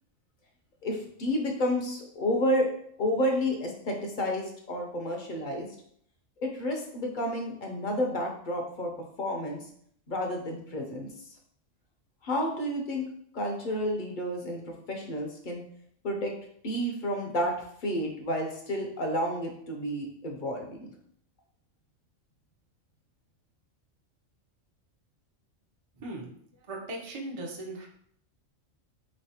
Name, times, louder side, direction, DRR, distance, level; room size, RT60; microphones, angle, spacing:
voice 1, 0.8-2.7 3.0-5.7 6.4-8.9 9.2-9.6 10.1-11.1 12.2-13.0 13.3-14.6 14.9-15.6 16.0-16.3 16.6-17.5 17.8-20.9, equal, 50° left, 1 dB, 0.6 m, -30 dB
voice 2, 25.9-27.9, right 2 dB, 40° right, -1 dB, 0.4 m, -39 dB
3.9 x 3.1 x 2.8 m, 0.65 s
omnidirectional pair, 1.4 m